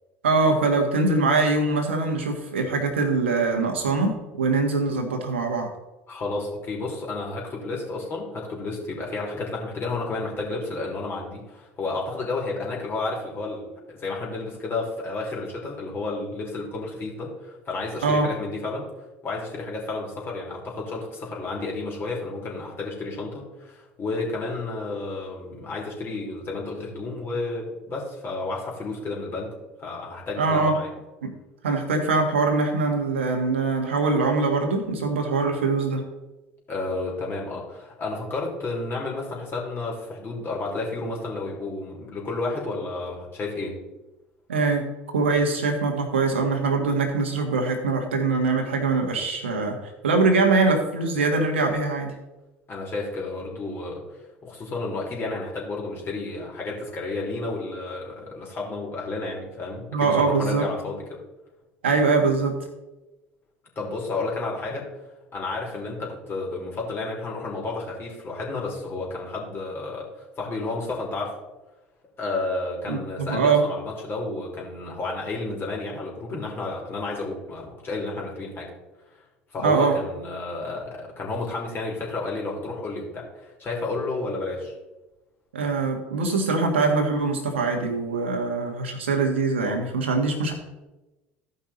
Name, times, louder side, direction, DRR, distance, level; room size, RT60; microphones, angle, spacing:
voice 1, 0.2-5.7 18.0-18.3 30.4-30.7 31.2-31.3 31.6-36.0 44.5-44.8 45.1-49.8 50.0-52.1 59.9-60.7 61.8-62.6 72.9-73.6 79.6-79.9 85.5-90.6, right 3 dB, 80° right, 3 dB, 1.7 m, -23 dB
voice 2, 6.1-18.9 19.2-30.9 36.7-43.8 52.7-61.2 63.7-64.9 65.3-71.4 72.2-78.7 79.1-79.2 79.5-84.7, left 3 dB, 35° left, -1 dB, 3.3 m, -31 dB
14.0 x 5.6 x 4.2 m, 1.1 s
figure-of-eight pair, 65°, 6 cm